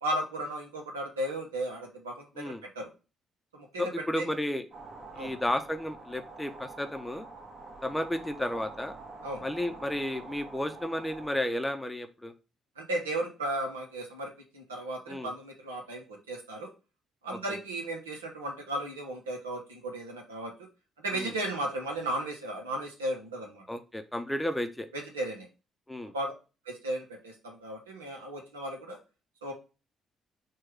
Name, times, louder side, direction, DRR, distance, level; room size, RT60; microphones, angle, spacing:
voice 1, 0.0-2.9 3.5-3.9 4.2-4.3 5.1-5.4 9.2-9.4 12.8-16.7 17.2-20.5 21.0-23.6 24.9-25.5 26.1-26.3 26.7-29.0 29.4-29.5, right 1 dB, 85° right, 1 dB, 0.8 m, -35 dB
voice 2, 3.8-4.6 5.2-7.3 7.8-8.9 9.4-12.3 15.1-15.3 17.3-17.4 21.1-21.3 23.7-24.9 25.9-26.1, left 1 dB, 10° left, 8 dB, 0.6 m, -32 dB
sound 1, 4.7-11.4, right 3 dB, 55° right, 1.4 m, -46 dB
4.5 x 2.3 x 4.5 m, 0.32 s
figure-of-eight pair, 45°, 0 cm